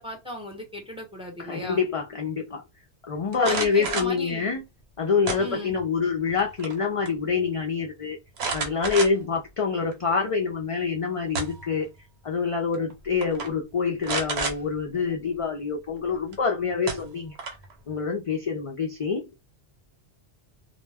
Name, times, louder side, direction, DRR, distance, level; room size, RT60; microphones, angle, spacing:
voice 1, 0.0-1.8 3.4-4.5 5.4-5.8, left 1 dB, 5° right, 0.6 m, -36 dB
voice 2, 1.4-2.6 3.1-4.6 5.0-8.2 8.5-11.9 12.2-17.4 17.9-19.4, left 5 dB, 55° left, 0.3 m, -26 dB
sound 1, 3.3-4.2 5.3-5.9 6.3-6.8 7.1-7.2 8.4-9.4 9.9-10.0 11.0-11.8 12.7-12.9 13.2-13.5 14.0-14.6 16.3-16.4 16.9-17.7, right 4 dB, 70° right, 1.0 m, -30 dB
2.2 x 2.1 x 3.3 m
omnidirectional pair, 1.1 m